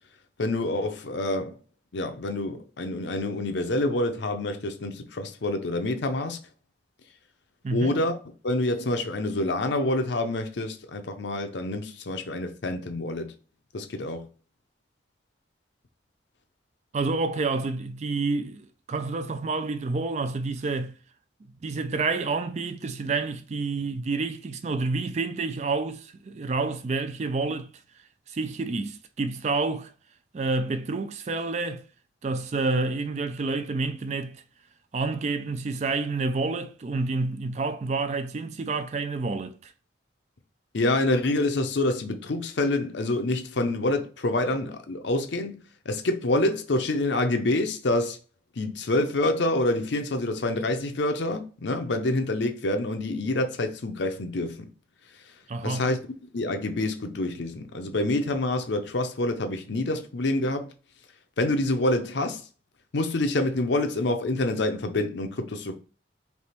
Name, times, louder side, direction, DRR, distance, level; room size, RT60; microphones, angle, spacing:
voice 1, 0.4-1.6 1.9-6.4 7.7-8.2 8.4-13.3 13.7-14.3 40.7-45.6 45.9-48.2 48.6-54.7 55.6-56.0 56.3-60.7 61.4-62.4 62.9-65.8, left 2 dB, 65° left, 0.6 m, -27 dB
voice 2, 7.6-7.9 16.9-21.0 21.6-27.7 28.3-29.9 30.3-31.8 32.2-34.4 34.9-39.7 55.5-55.9, right 3 dB, 35° right, 0.3 m, -29 dB
3.4 x 2.9 x 4.3 m
head